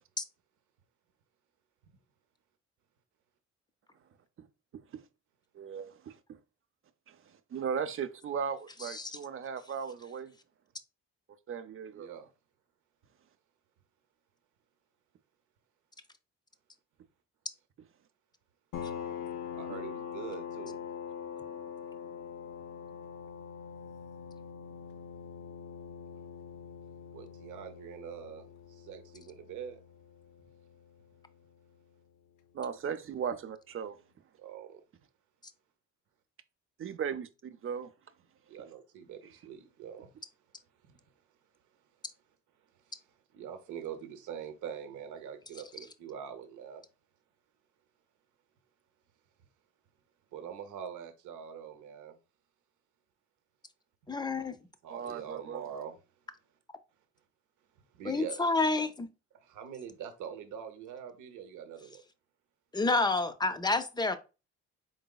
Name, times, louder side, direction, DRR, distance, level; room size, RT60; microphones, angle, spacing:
voice 1, 5.5-6.4 7.1-10.3 11.5-12.1 32.5-34.0 36.8-37.9 54.9-55.7, right 7 dB, 45° right, 0.5 m, -37 dB
voice 2, 11.9-12.3 19.5-20.8 27.1-29.8 34.4-34.8 38.5-40.1 40.8-41.0 42.9-46.8 50.3-52.2 54.8-56.0 57.9-58.6 59.3-62.0, right 8 dB, 80° right, 0.8 m, -44 dB
sound 1, 18.7-32.0, left 7 dB, 75° left, 0.6 m, -44 dB
voice 3, 54.1-54.5 58.0-59.1 62.7-64.2, left 3 dB, 15° left, 0.5 m, -29 dB
4.0 x 3.8 x 2.3 m
cardioid pair, 90°, 30 cm